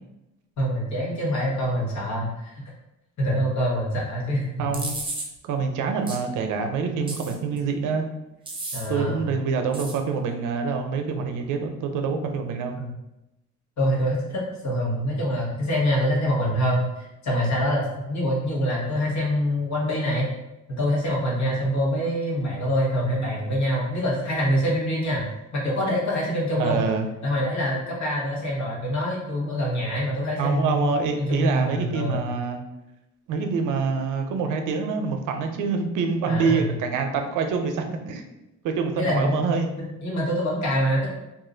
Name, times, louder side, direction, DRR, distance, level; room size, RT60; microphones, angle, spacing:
voice 1, 0.6-2.6 3.2-4.7 8.7-9.2 12.8-12.9 13.8-20.3 20.7-25.2 25.5-26.9 27.2-32.3 36.3-36.7 39.0-39.5 40.0-41.1, equal, 70° left, -4 dB, 1.4 m, -25 dB
voice 2, 4.6-4.9 5.4-8.0 8.9-12.8 26.6-27.1 30.4-32.6 33.3-38.2 38.6-39.7, right 5 dB, 90° right, 5 dB, 0.6 m, -26 dB
sound 1, 4.7-5.3 6.1-6.2 7.1-7.6 8.5-8.9 9.7-10.0, right 2 dB, 15° right, 0.7 m, -33 dB
2.8 x 2.4 x 3.8 m, 0.94 s
cardioid pair, 90°, 30 cm